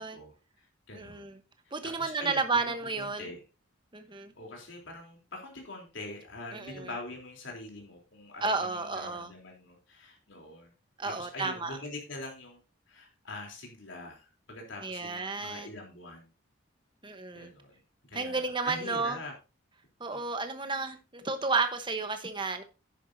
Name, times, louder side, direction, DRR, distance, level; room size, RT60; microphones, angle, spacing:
voice 1, 0.0-1.3 1.8-3.4 4.1-10.7 11.0-12.6 12.9-16.3 17.3-17.8 18.1-19.3 20.1-20.2, left 2 dB, 65° left, 3.6 m, -44 dB
voice 2, 0.9-1.4 1.7-3.3 3.9-4.3 6.5-6.9 8.4-9.3 11.0-11.8 14.8-15.7 17.0-17.5 18.1-19.2 20.0-22.6, right 4 dB, 25° right, 1.1 m, -32 dB
11.0 x 10.0 x 2.7 m
head